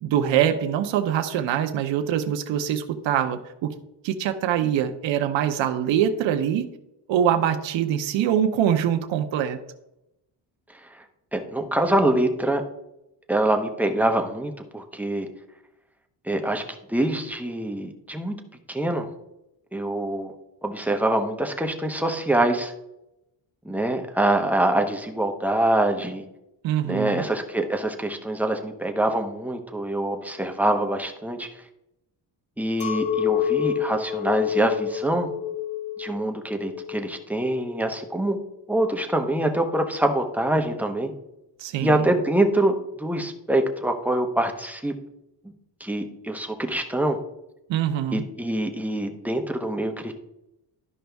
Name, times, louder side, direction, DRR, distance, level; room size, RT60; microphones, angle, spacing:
voice 1, 0.0-3.7 4.0-6.6 7.1-9.6 26.6-27.3 41.6-42.1 47.7-48.2, right 9 dB, 80° right, 6 dB, 0.8 m, -24 dB
voice 2, 11.3-12.6 13.3-15.3 16.3-16.6 16.9-18.4 18.7-19.1 19.7-20.3 20.6-22.7 23.6-26.2 26.8-31.5 32.6-35.3 36.0-38.4 38.7-41.1 41.8-44.9 45.4-45.5 45.8-47.2 48.1-50.1, right 1 dB, 5° right, 4 dB, 0.9 m, -25 dB
Chink clink, 32.8-38.3, left 9 dB, 50° left, 1.4 m, -28 dB
12.5 x 5.2 x 3.4 m, 0.88 s
cardioid pair, 140°, 44 cm